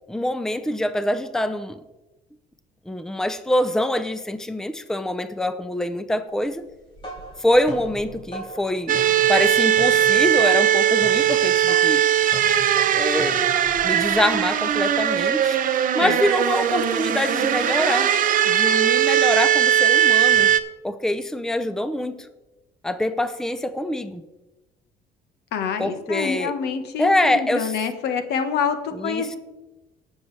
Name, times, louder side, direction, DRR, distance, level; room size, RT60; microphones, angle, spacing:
voice 1, 0.1-1.8 2.9-6.6 7.4-9.0 9.3-12.0 12.9-13.4 13.8-15.6 15.9-18.2 18.5-20.5 20.8-22.3 22.8-24.2 25.8-26.6 27.0-27.8 28.9-29.4, left 1 dB, 5° left, 11 dB, 0.6 m, -24 dB
sound 1, 6.7-14.4, right 1 dB, 30° left, 4.5 m, -39 dB
sound 2, 8.9-20.6, right 10 dB, 55° right, 0.8 m, -19 dB
voice 2, 25.5-29.4, left 6 dB, 80° left, 8 dB, 1.4 m, -26 dB
19.5 x 7.2 x 3.3 m, 1.1 s
cardioid pair, 110°, 17 cm